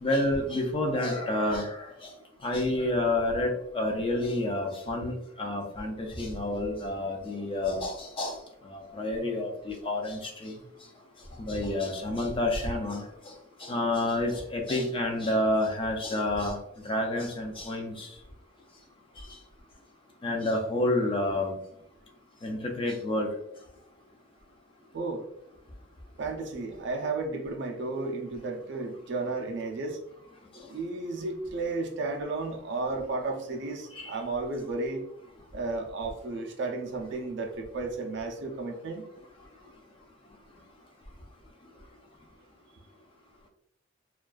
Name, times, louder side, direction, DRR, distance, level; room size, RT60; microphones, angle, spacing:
voice 1, 0.0-1.8 2.4-8.4 8.7-10.5 11.5-13.1 13.6-16.6 16.9-18.1 20.2-21.6 22.4-23.3 34.0-34.1, left 1 dB, 25° left, 2 dB, 0.3 m, -29 dB
voice 2, 26.2-30.0 30.7-35.0 35.5-39.1, right 3 dB, 60° right, 3 dB, 0.4 m, -33 dB
2.4 x 2.2 x 2.2 m, 0.77 s
head